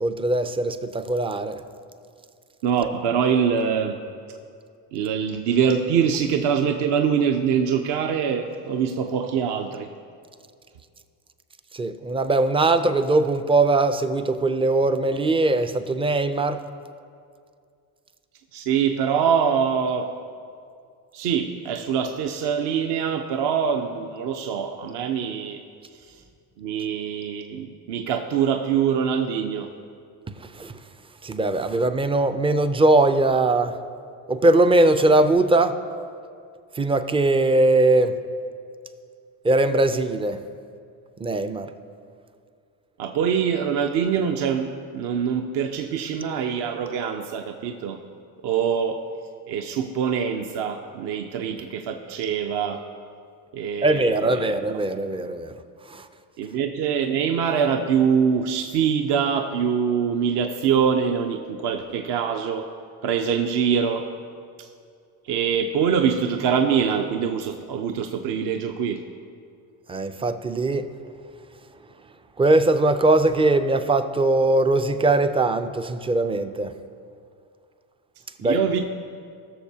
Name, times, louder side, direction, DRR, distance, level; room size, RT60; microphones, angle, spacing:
voice 1, 0.0-1.6 11.7-16.6 30.5-30.7 31.2-33.8 34.3-35.8 36.8-38.1 39.4-40.4 41.2-41.7 53.8-55.5 55.9-56.1 69.9-70.9 72.4-76.7 78.4-78.6, right 2 dB, 15° right, 10 dB, 0.4 m, -20 dB
voice 2, 2.6-4.0 4.9-9.9 18.5-20.1 21.1-25.6 26.0-26.2 26.6-29.7 43.0-48.0 48.4-49.1 49.5-52.8 53.5-54.6 56.4-62.7 63.0-64.1 64.6-64.7 65.3-69.0 78.4-78.8, right 7 dB, 60° right, 5 dB, 0.8 m, -24 dB
19.5 x 6.7 x 2.8 m, 2.3 s
supercardioid pair, 85°, 47 cm